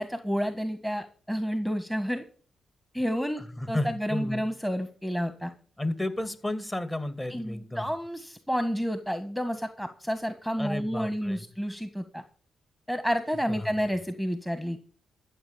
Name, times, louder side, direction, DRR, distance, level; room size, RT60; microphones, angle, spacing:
voice 1, 0.0-2.2 2.9-5.5 7.3-12.2 12.9-14.8, equal, 5° left, 9 dB, 1.7 m, -30 dB
voice 2, 3.4-4.4 5.8-7.9 10.6-11.5 13.5-13.7, left 1 dB, 20° left, 10 dB, 2.5 m, -32 dB
13.0 x 7.5 x 7.2 m, 0.43 s
supercardioid pair, 45°, 0 cm